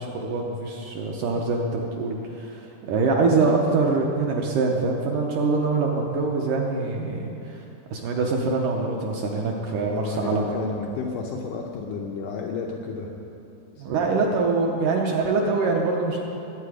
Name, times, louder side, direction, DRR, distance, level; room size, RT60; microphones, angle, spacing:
voice 1, 0.0-7.6 7.9-10.7 13.8-16.2, right 3 dB, 75° right, 0 dB, 1.9 m, -24 dB
voice 2, 9.8-13.1 13.8-13.9, left 5 dB, 85° left, 0 dB, 1.8 m, -32 dB
20.5 x 8.8 x 5.0 m, 2.8 s
omnidirectional pair, 4.7 m